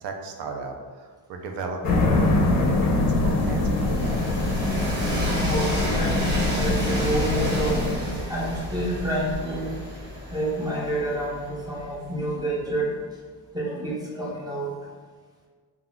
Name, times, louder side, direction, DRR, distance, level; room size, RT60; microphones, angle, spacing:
voice 1, 0.0-4.2 9.3-9.6, right 4 dB, 75° right, 3 dB, 0.5 m, -36 dB
sound 1, 1.8-8.0, left 2 dB, 55° left, 0.5 m, -23 dB
Train, 2.3-12.2, equal, 25° right, 0.8 m, -33 dB
voice 2, 5.4-9.7 10.3-13.0 13.5-14.7, right 1 dB, 10° right, -6 dB, 0.4 m, -29 dB
2.3 x 2.3 x 3.7 m, 1.5 s
cardioid pair, 145°, 43 cm